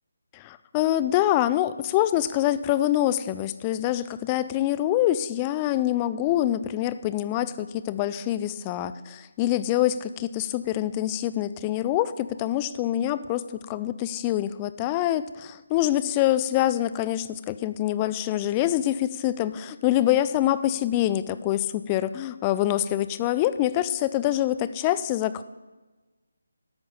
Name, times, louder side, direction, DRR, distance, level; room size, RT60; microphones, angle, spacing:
voice 1, 0.3-25.4, left 13 dB, 20° left, 14 dB, 0.4 m, -25 dB
13.0 x 5.3 x 7.3 m, 1.2 s
figure-of-eight pair, 160°, 0 cm